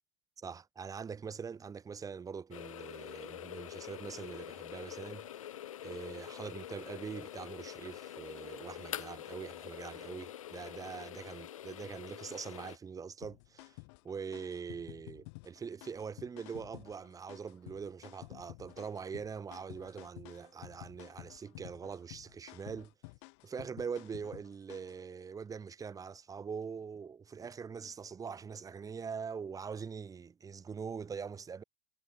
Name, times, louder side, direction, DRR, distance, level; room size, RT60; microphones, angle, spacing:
voice 1, 0.4-5.3 5.8-13.8 14.0-22.9 23.4-31.6, right 6 dB, 20° right, 1.8 m, -43 dB
sound 1, 2.5-12.8, left 11 dB, 80° left, 1.4 m, -46 dB
sound 2, 13.2-25.0, left 33 dB, 60° left, 6.3 m, -52 dB
hypercardioid pair, 100°, 17 cm